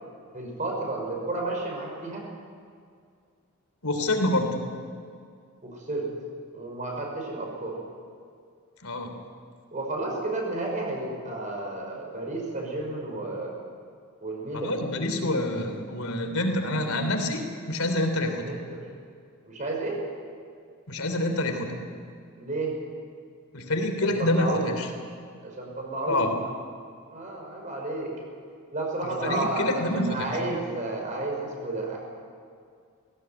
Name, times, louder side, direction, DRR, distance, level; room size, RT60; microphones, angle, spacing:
voice 1, 0.3-2.2 5.6-6.1 6.5-7.8 9.7-13.5 14.2-14.7 18.2-18.8 19.4-20.0 22.3-22.8 24.0-24.7 25.4-26.3 27.1-28.1 28.7-32.0, right 2 dB, 35° right, 0 dB, 5.7 m, -32 dB
voice 2, 3.8-4.6 8.8-9.2 14.5-18.5 20.9-21.7 23.5-24.9 26.1-26.4 29.0-30.3, left 1 dB, 90° left, 5 dB, 3.3 m, -27 dB
20.0 x 17.0 x 9.3 m, 2.2 s
head